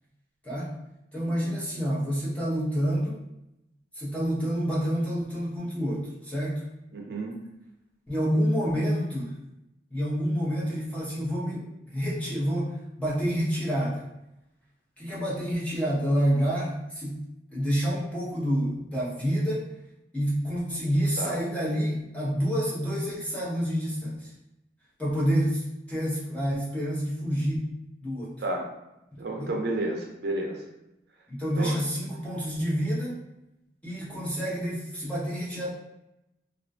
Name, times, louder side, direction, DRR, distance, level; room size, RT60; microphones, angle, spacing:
voice 1, 0.4-0.7 1.1-3.2 3.9-6.6 8.1-9.4 9.9-14.0 15.0-17.2 17.5-19.7 20.1-24.3 25.0-27.7 28.0-28.4 29.4-29.5 31.3-33.2 33.8-35.7, equal, 10° left, -7 dB, 0.6 m, -28 dB
voice 2, 1.2-1.6 6.9-7.4 21.2-21.3 28.4-28.7 29.2-30.6 31.6-31.7, right 2 dB, 65° right, 1 dB, 0.4 m, -31 dB
2.3 x 2.1 x 2.5 m, 0.89 s
head